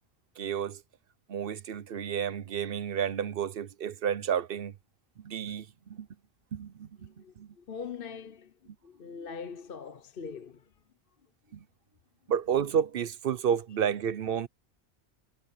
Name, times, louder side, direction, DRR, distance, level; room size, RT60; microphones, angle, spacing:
voice 1, 0.4-0.8 1.3-4.7 5.2-6.1 6.5-7.5 11.5-11.6 12.3-14.5, right 8 dB, 60° right, 1.0 m, -31 dB
voice 2, 7.2-10.7, left 6 dB, 55° left, 1.1 m, -42 dB
omnidirectional pair, 1.1 m